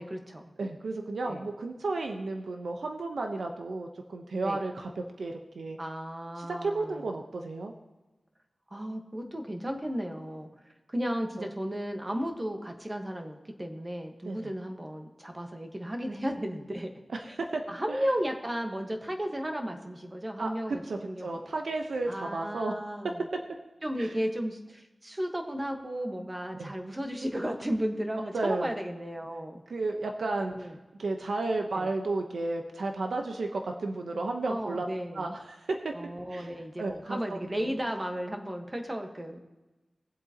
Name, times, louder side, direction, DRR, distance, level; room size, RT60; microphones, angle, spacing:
voice 1, 0.0-0.5 1.2-1.4 4.4-4.6 5.8-7.0 8.7-10.5 10.9-16.9 17.2-17.3 17.7-21.4 22.1-23.2 23.8-29.6 30.4-30.7 31.7-31.9 34.5-35.3 35.9-39.4, equal, 20° right, 3 dB, 1.4 m, -34 dB
voice 2, 0.6-5.8 6.4-7.7 14.2-14.4 17.1-18.0 20.4-22.7 23.0-23.4 24.0-24.1 26.5-26.7 28.3-28.8 29.7-30.7 31.0-34.9 35.1-35.9 36.3-36.5 36.8-37.7, right 3 dB, 80° right, 3 dB, 0.9 m, -33 dB
21.0 x 7.8 x 3.0 m, 1.1 s
wide cardioid pair, 105°, 0 cm